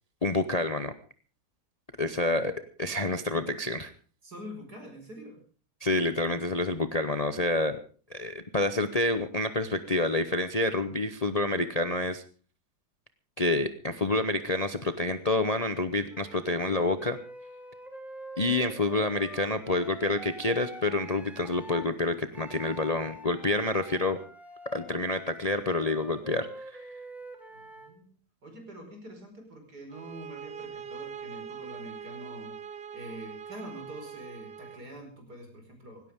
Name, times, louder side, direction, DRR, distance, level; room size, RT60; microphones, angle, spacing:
voice 1, 0.2-0.9 2.0-2.5 2.8-3.9 5.8-7.8 8.1-12.2 13.4-17.2 18.4-24.2 24.7-26.9, left 2 dB, 30° left, 10 dB, 0.7 m, -28 dB
voice 2, 4.2-5.4 26.3-26.4 27.5-28.2 28.4-32.6 32.9-36.1, equal, 65° right, 3 dB, 5.6 m, -45 dB
Wind instrument woodwind instrument, 16.1-21.9 22.3-28.0, equal, ahead, 2.3 m, -46 dB
sound 1, 29.9-34.9, right 7 dB, 45° right, 0.8 m, -42 dB
18.5 x 17.0 x 3.6 m, 0.39 s
omnidirectional pair, 1.8 m